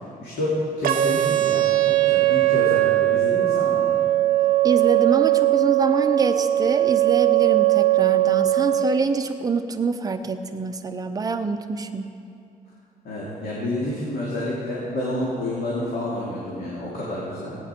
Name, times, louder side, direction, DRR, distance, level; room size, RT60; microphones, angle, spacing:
voice 1, 0.2-4.0 13.0-17.6, left 1 dB, 75° left, -7 dB, 2.6 m, -29 dB
sound 1, 0.8-8.8, right 15 dB, 65° right, 0.8 m, -19 dB
voice 2, 4.6-12.1, right 4 dB, 25° right, 6 dB, 0.7 m, -25 dB
17.5 x 9.2 x 4.5 m, 2.5 s
cardioid pair, 145°, 16 cm